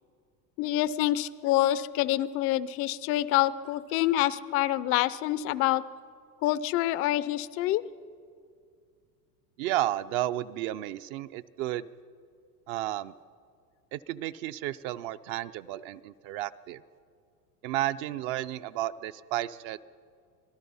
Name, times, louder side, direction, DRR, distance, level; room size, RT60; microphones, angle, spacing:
voice 1, 0.6-5.8 6.4-7.8, left 14 dB, 30° left, 17 dB, 0.4 m, -26 dB
voice 2, 9.6-11.8 12.7-13.1 13.9-16.8 17.6-19.8, right 14 dB, 50° right, 14 dB, 0.7 m, -32 dB
26.0 x 18.0 x 5.5 m, 2.2 s
supercardioid pair, 135°, 49 cm